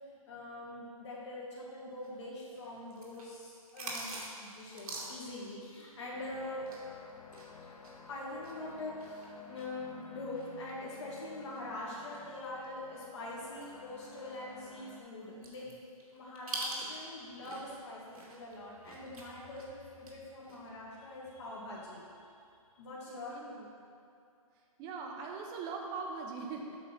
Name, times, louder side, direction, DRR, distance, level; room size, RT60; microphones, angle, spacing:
voice 1, 0.1-6.6 8.1-15.7 16.1-22.1 22.8-23.4, left 2 dB, 50° left, -5 dB, 1.7 m, -44 dB
sound 1, 2.0-7.0 7.2-12.8 13.2-13.3 13.6-17.8 18.1-20.1 20.4-20.7, right 2 dB, 75° right, 1.7 m, -45 dB
sound 2, 6.1-15.0, left 6 dB, 85° left, 0.7 m, -53 dB
voice 2, 23.1-23.7 24.8-26.8, right 4 dB, 20° right, 1 dB, 0.7 m, -41 dB
7.9 x 3.8 x 5.6 m, 2.5 s
hypercardioid pair, 145°, 19 cm